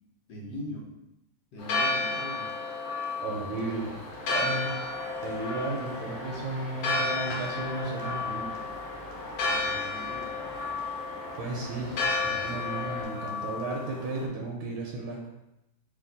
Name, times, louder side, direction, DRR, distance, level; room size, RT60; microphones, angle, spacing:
voice 1, 0.3-0.9 1.5-2.5 9.4-10.4, equal, 65° left, -3 dB, 1.2 m, -40 dB
Church bell, 1.6-14.3, left 3 dB, 85° left, 1.7 m, -32 dB
voice 2, 3.2-4.0 4.2-4.7 5.2-8.6 11.4-11.9 12.2-15.3, right 3 dB, 75° right, -2 dB, 1.4 m, -34 dB
sound 1, 3.7-13.0, equal, 40° left, 0.9 m, -43 dB
3.5 x 2.8 x 3.9 m, 0.90 s
omnidirectional pair, 2.4 m